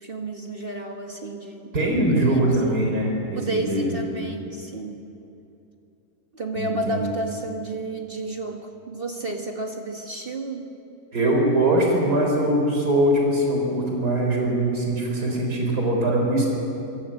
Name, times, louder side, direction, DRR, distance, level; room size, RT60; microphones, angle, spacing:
voice 1, 0.0-2.8 3.3-5.0 6.3-10.7, right 2 dB, 40° right, 3 dB, 1.5 m, -32 dB
voice 2, 1.7-4.0 6.6-7.1 11.1-16.5, right 1 dB, 85° right, 0 dB, 4.5 m, -22 dB
25.5 x 18.5 x 7.6 m, 2.8 s
omnidirectional pair, 1.7 m